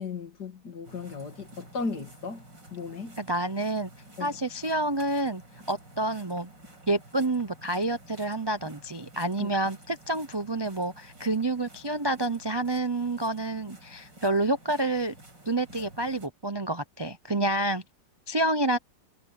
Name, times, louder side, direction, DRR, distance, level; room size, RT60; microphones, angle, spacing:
voice 1, 0.0-2.4 2.7-3.2 4.2-4.4 9.4-9.5, left 4 dB, 65° left, 2.9 m, -36 dB
sound 1, 0.8-16.3, right 1 dB, 90° right, 8.1 m, -51 dB
voice 2, 3.2-3.9 4.2-5.4 5.7-6.5 6.9-15.1 15.5-17.8 18.3-18.8, right 2 dB, 40° right, 0.3 m, -28 dB
omnidirectional pair, 1.9 m